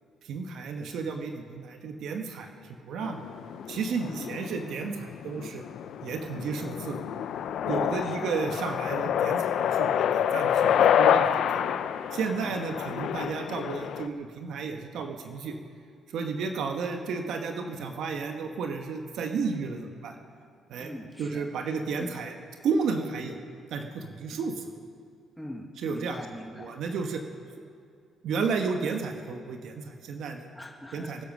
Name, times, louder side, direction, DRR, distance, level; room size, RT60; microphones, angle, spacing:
voice 1, 0.2-2.5 2.8-3.2 3.7-5.6 6.0-7.0 7.7-10.1 10.3-11.6 12.1-15.5 16.1-20.1 20.7-20.9 21.2-22.3 22.6-23.4 23.7-24.7 25.8-26.2 26.5-27.2 28.2-30.5 30.9-31.2, right 5 dB, 75° right, 4 dB, 1.3 m, -32 dB
sound 1, 3.0-14.1, left 9 dB, 75° left, 0.6 m, -28 dB
voice 2, 7.7-8.3 12.4-12.5 20.8-21.4 22.0-22.1 24.3-24.4 25.4-26.7 30.6-31.2, left 1 dB, 5° left, 0 dB, 1.9 m, -42 dB
21.0 x 10.5 x 6.2 m, 2.3 s
cardioid pair, 85°, 0 cm